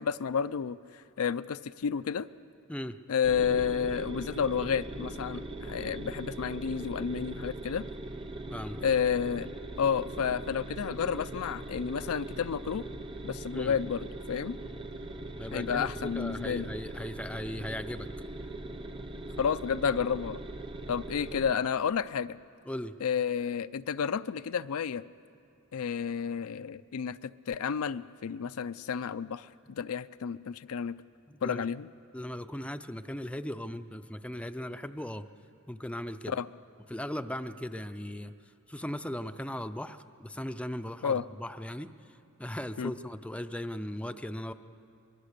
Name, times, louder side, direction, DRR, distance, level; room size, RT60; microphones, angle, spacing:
voice 1, 0.0-2.3 3.1-7.9 8.8-9.5 9.8-12.8 13.2-14.6 15.5-16.7 19.4-20.4 20.9-22.4 23.0-25.0 25.7-30.9 31.4-31.9 36.3-36.5 41.0-41.2 42.8-42.9, left 7 dB, 70° left, 13 dB, 0.4 m, -31 dB
sound 1, 3.2-21.5, right 2 dB, 25° right, 0.9 m, -40 dB
voice 2, 15.4-18.1 22.7-22.9 31.3-31.7 32.1-35.3 35.7-36.4 36.9-38.3 38.7-44.5, left 1 dB, 5° left, 9 dB, 0.5 m, -38 dB
24.5 x 22.0 x 6.7 m, 2.5 s
head